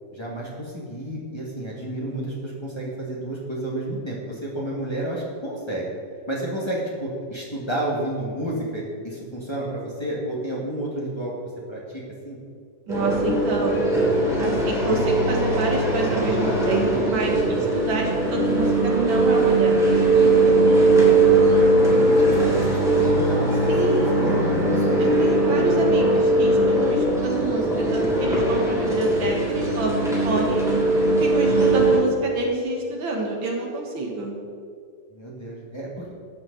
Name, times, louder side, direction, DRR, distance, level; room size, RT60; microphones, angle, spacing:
voice 1, 0.1-5.9 6.3-11.3 11.7-12.4 20.8-21.1 21.5-25.8 31.4-31.9 35.1-36.1, right 1 dB, 15° left, -5 dB, 1.9 m, -31 dB
sound 1, 12.9-32.0, right 2 dB, ahead, 2.4 m, -20 dB
voice 2, 12.9-13.8 14.4-20.7 23.7-24.3 25.0-30.6 31.2-34.4, right 3 dB, 90° right, -1 dB, 2.3 m, -27 dB
12.5 x 8.9 x 4.1 m, 2.2 s
omnidirectional pair, 2.1 m